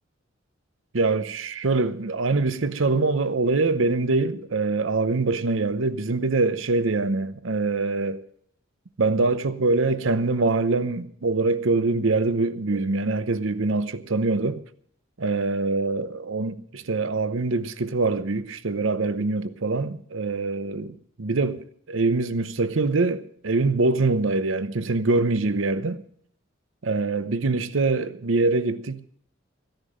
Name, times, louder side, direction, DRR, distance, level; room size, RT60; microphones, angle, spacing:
voice 1, 0.9-8.2 9.0-14.6 15.2-26.0 26.8-29.0, right 3 dB, 90° right, 0.8 m, -24 dB
15.0 x 10.5 x 6.4 m
head